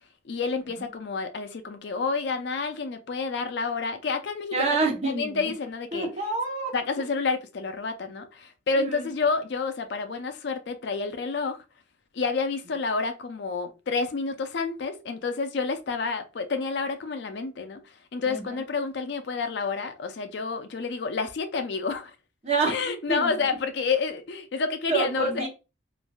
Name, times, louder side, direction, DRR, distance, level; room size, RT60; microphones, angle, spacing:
voice 1, 0.3-4.8 5.0-6.1 6.7-11.6 12.1-17.8 18.1-22.1 22.7-25.5, left 4 dB, 60° left, 0.4 m, -29 dB
voice 2, 4.5-5.5 5.9-6.7 8.8-9.1 18.3-18.6 22.4-22.8 23.1-23.3 24.9-25.5, right 3 dB, 35° right, 0.7 m, -27 dB
3.1 x 2.4 x 2.2 m
head